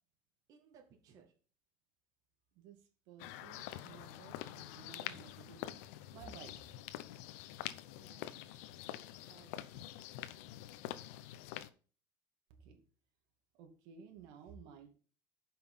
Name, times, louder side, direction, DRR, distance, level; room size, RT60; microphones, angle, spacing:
voice 1, 0.5-1.3 7.8-8.9 9.2-9.6, right 6 dB, 50° right, 2 dB, 2.1 m, -64 dB
voice 2, 3.1-5.8 6.1-6.8 12.5-12.8 13.6-14.9, right 6 dB, 70° right, 4 dB, 2.4 m, -55 dB
sound 1, 3.2-11.7, left 13 dB, 85° left, 0.8 m, -46 dB
8.7 x 5.9 x 5.6 m, 0.39 s
cardioid pair, 130°, 8 cm